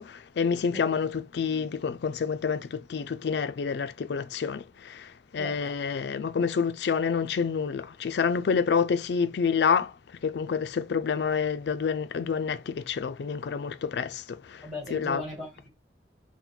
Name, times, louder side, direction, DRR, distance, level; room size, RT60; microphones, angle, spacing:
voice 1, 0.0-9.9 10.2-15.2, left 6 dB, 65° left, 0.4 m, -28 dB
voice 2, 14.6-15.7, left 1 dB, ahead, 1.9 m, -37 dB
4.0 x 2.1 x 4.3 m
head